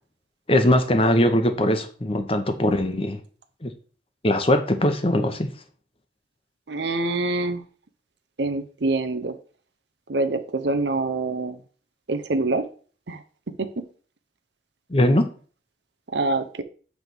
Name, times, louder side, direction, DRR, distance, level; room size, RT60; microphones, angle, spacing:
voice 1, 0.5-3.2 3.6-3.7 4.2-5.5 14.9-15.2, left 1 dB, 30° left, 6 dB, 0.9 m, -20 dB
voice 2, 6.7-7.6 8.4-9.3 10.1-11.6 12.1-12.6 13.1-13.2 13.6-13.7 16.1-16.6, right 2 dB, 65° right, 9 dB, 0.7 m, -25 dB
8.2 x 3.5 x 6.0 m, 0.41 s
head